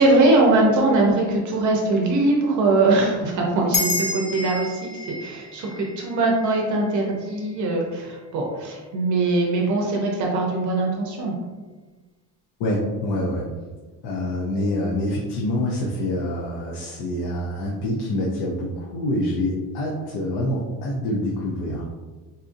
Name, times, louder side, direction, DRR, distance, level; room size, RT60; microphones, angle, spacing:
voice 1, 0.0-11.3, right 2 dB, 50° right, -1 dB, 0.6 m, -21 dB
sound 1, 3.7-8.4, left 3 dB, 20° left, 0.3 m, -31 dB
voice 2, 12.6-13.4 14.0-21.8, left 1 dB, 75° left, -3 dB, 0.7 m, -26 dB
4.1 x 2.5 x 2.5 m, 1.3 s
cardioid pair, 165°, 40 cm